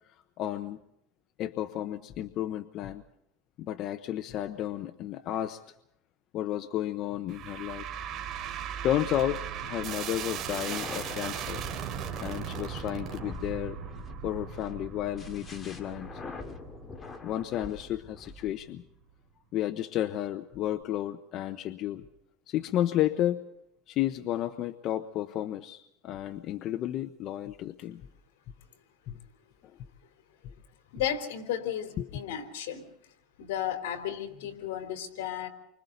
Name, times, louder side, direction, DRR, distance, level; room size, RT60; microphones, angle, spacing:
voice 1, 0.4-0.8 1.4-3.0 3.6-5.6 6.3-7.8 8.8-11.6 12.2-13.8 14.2-16.2 17.2-18.8 19.5-22.1 22.5-23.4 23.9-28.0 29.1-29.2 30.4-30.5 32.0-32.1, left 12 dB, 40° left, 9 dB, 0.9 m, -32 dB
sound 1, 7.3-18.6, right 8 dB, 35° right, 3.2 m, -38 dB
sound 2, 10.5-18.6, left 4 dB, 20° left, 2.3 m, -45 dB
voice 2, 30.9-32.8 33.4-35.5, left 10 dB, 80° left, 7 dB, 3.7 m, -33 dB
30.0 x 25.0 x 4.0 m, 0.78 s
supercardioid pair, 150°, 0 cm